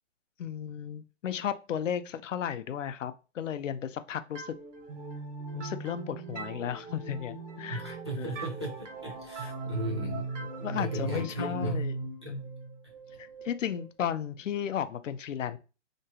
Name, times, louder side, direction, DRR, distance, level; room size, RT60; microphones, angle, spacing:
voice 1, 0.4-4.5 5.5-7.8 8.2-8.3 9.4-9.5 10.6-12.0 12.3-12.4 13.2-15.6, left 9 dB, 85° left, 12 dB, 0.5 m, -34 dB
sound 1, 4.4-13.9, right 3 dB, 80° right, 1.0 m, -38 dB
voice 2, 7.7-11.9 12.2-12.4, equal, 25° right, -3 dB, 0.5 m, -37 dB
2.9 x 2.2 x 2.8 m, 0.31 s
hypercardioid pair, 175°, 37 cm